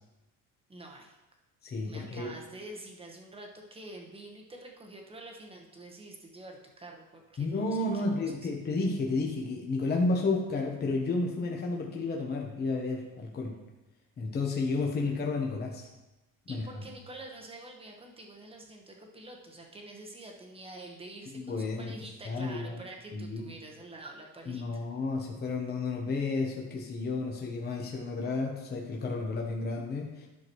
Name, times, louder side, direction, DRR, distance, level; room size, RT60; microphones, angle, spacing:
voice 1, 0.7-1.2 1.8-8.5 16.5-24.6, right 2 dB, 15° right, 1 dB, 1.1 m, -47 dB
voice 2, 1.6-2.3 7.4-13.6 14.2-15.9 16.5-16.7 21.3-21.9 22.2-22.8 23.1-23.4 24.5-30.3, left 3 dB, 30° left, 0 dB, 1.0 m, -31 dB
11.0 x 6.0 x 3.1 m, 1.0 s
cardioid pair, 145°, 35 cm